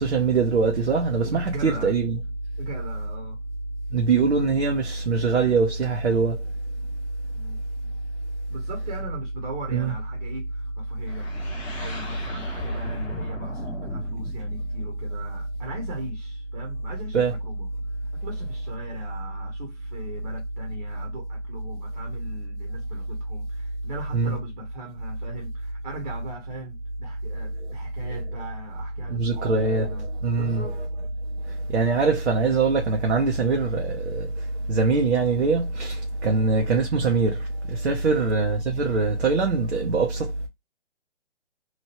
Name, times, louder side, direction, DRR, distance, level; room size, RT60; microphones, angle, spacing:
voice 1, 0.0-2.2 3.9-6.4 9.7-9.9 17.1-17.4 24.1-24.3 29.1-29.9 30.2-30.7 31.4-40.5, right 4 dB, 65° right, 0.9 m, -23 dB
voice 2, 1.2-1.9 2.6-3.4 7.3-7.6 8.5-30.1 30.3-30.8 36.2-36.5 38.1-38.3, right 2 dB, 40° right, 1.1 m, -40 dB
sound 1, 11.1-15.9, left 2 dB, 5° left, 0.5 m, -38 dB
3.0 x 2.6 x 2.9 m
figure-of-eight pair, 145°, 35 cm